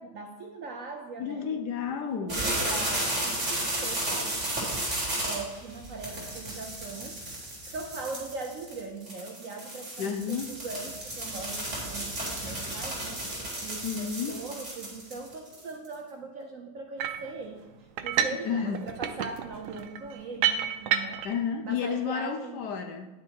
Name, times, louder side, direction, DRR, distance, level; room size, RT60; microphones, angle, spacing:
voice 1, 0.0-1.5 2.2-4.6 5.2-7.2 7.6-13.2 13.6-21.3 21.6-22.7, right 3 dB, 55° right, 3 dB, 0.9 m, -40 dB
voice 2, 1.2-2.4 10.0-10.5 13.8-14.4 18.4-18.8 21.2-23.1, left 7 dB, 70° left, 7 dB, 1.1 m, -31 dB
sound 1, 2.3-15.9, right 1 dB, 35° right, 3.9 m, -33 dB
sound 2, 17.0-17.3 18.0-18.5 18.7-21.4, right 9 dB, 90° right, 1.5 m, -29 dB
10.5 x 7.2 x 4.6 m, 1.1 s
omnidirectional pair, 2.2 m